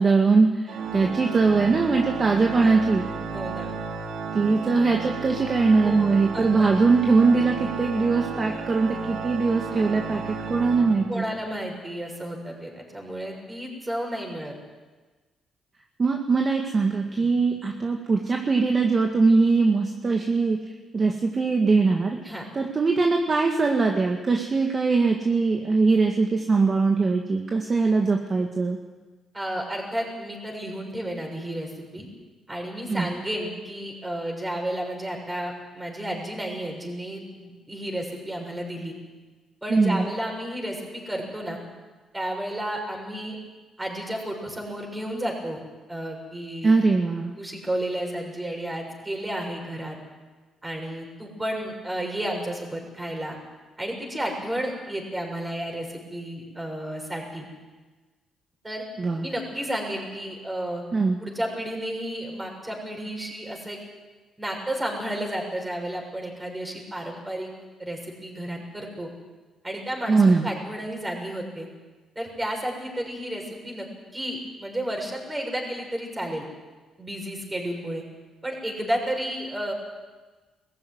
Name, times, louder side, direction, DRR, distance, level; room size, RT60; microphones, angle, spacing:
voice 1, 0.0-3.0 4.3-11.3 16.0-20.6 20.9-28.8 32.9-33.1 39.7-40.1 46.6-47.3 59.0-59.3 60.9-61.2 70.1-70.5, right 4 dB, 35° right, 2 dB, 2.0 m, -21 dB
Organ, 0.7-11.5, right 5 dB, 70° right, 2.2 m, -33 dB
voice 2, 2.4-2.8 3.3-3.7 5.8-6.7 11.1-14.5 17.2-17.3 22.3-22.5 29.3-32.1 32.5-38.9 39.6-41.6 42.1-43.4 43.8-45.6 45.9-46.8 47.4-50.0 50.6-53.4 53.8-57.4 58.6-58.8 59.2-60.8 61.2-63.8 64.4-67.5 67.8-69.1 69.6-71.7 72.2-73.9 74.1-76.5 77.0-78.0 78.4-79.7, right 1 dB, 15° right, 1 dB, 6.8 m, -32 dB
21.0 x 15.0 x 9.6 m, 1.3 s
cardioid pair, 90°, 0 cm